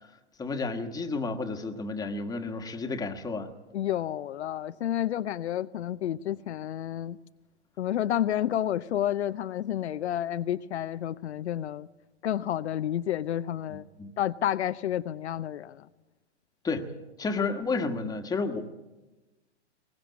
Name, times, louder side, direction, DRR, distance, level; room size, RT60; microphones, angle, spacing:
voice 1, 0.4-3.5 13.7-14.1 16.6-16.9 17.2-18.7, left 4 dB, 10° left, 5 dB, 1.5 m, -31 dB
voice 2, 3.7-7.2 7.8-11.9 12.2-13.9 14.2-15.9, left 11 dB, 70° left, 11 dB, 0.7 m, -30 dB
22.0 x 18.5 x 8.3 m, 1.1 s
hypercardioid pair, 120°, 35 cm